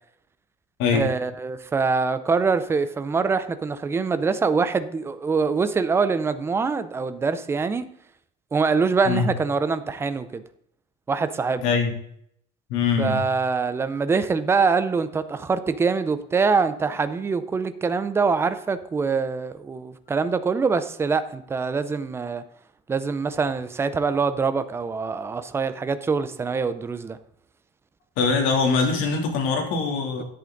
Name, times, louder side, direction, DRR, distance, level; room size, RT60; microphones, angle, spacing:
voice 1, 0.9-7.8 8.5-10.4 11.1-11.6 13.0-22.4 22.9-27.2, right 4 dB, 10° right, 12 dB, 0.5 m, -24 dB
voice 2, 11.6-11.9 12.7-13.2 28.2-30.2, left 5 dB, 80° left, 3 dB, 2.8 m, -22 dB
10.5 x 8.5 x 3.9 m, 0.70 s
cardioid pair, 170°, 20 cm